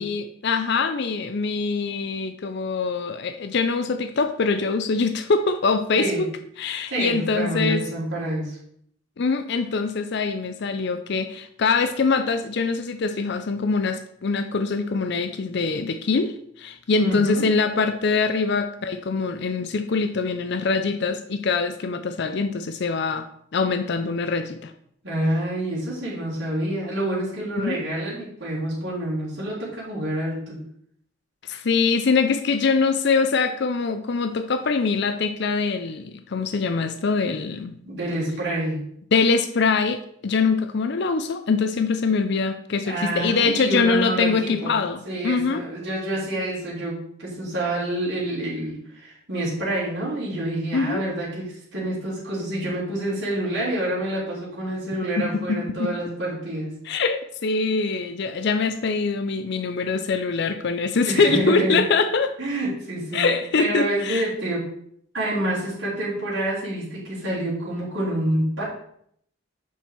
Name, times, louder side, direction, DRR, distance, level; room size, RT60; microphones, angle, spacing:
voice 1, 0.0-6.1 6.6-7.8 9.2-23.3 23.5-24.7 27.6-27.8 31.4-37.7 39.1-45.6 50.7-51.0 55.8-55.9 56.9-62.3 63.1-64.3, left 4 dB, 55° left, 9 dB, 0.5 m, -23 dB
voice 2, 6.9-8.6 16.9-17.5 25.0-30.6 37.8-38.8 42.8-44.7 45.0-56.7 60.9-61.8 62.4-63.3 63.6-64.6 65.1-68.6, right 1 dB, 55° right, -7 dB, 3.2 m, -27 dB
7.3 x 5.4 x 4.4 m, 0.67 s
head